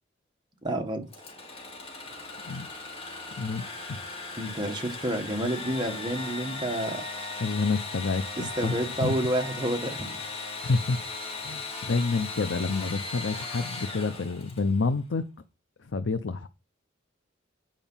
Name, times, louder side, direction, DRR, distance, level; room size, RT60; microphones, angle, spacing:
voice 1, 0.6-1.1 4.4-7.0 7.3-7.5 8.4-10.2, right 1 dB, 25° right, 1.6 m, -29 dB
Engine / Sawing, 1.1-14.8, left 3 dB, 30° left, 2.6 m, -38 dB
voice 2, 3.4-4.0 7.4-8.7 9.0-9.2 10.6-11.1 11.4-15.2 15.8-16.5, left 4 dB, 75° left, 0.6 m, -28 dB
9.1 x 5.0 x 5.6 m
head